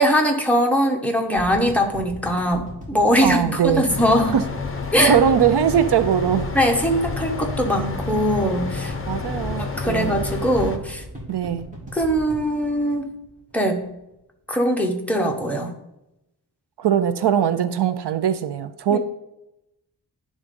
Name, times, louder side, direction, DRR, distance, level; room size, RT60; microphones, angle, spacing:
voice 1, 0.0-4.3 4.9-5.2 6.5-8.9 9.6-11.0 11.9-13.1 13.5-13.8 14.5-15.7 18.9-19.0, equal, 5° left, 1 dB, 1.0 m, -21 dB
sound 1, 1.4-13.5 13.8-13.9 14.1-14.2, equal, 20° right, 2.5 m, -37 dB
voice 2, 3.2-3.8 4.3-4.4 5.0-6.5 9.1-10.2 11.3-11.7 16.8-19.0, right 9 dB, 75° right, 12 dB, 0.6 m, -20 dB
sound 2, 3.9-10.8, left 4 dB, 30° left, 0.7 m, -30 dB
11.0 x 3.7 x 5.2 m, 0.88 s
wide cardioid pair, 155°, 41 cm